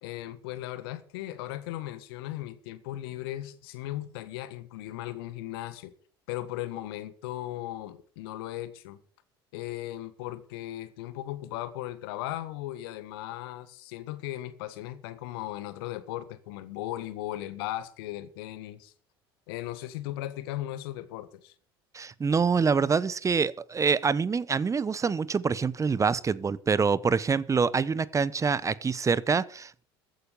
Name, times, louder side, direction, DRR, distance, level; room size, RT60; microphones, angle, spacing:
voice 1, 0.0-5.9 6.3-9.0 9.5-18.9 19.5-21.5, left 14 dB, 70° left, 1.7 m, -37 dB
voice 2, 21.9-29.8, right 5 dB, 25° right, 0.9 m, -26 dB
15.0 x 9.2 x 6.9 m
hypercardioid pair, 70°, 13 cm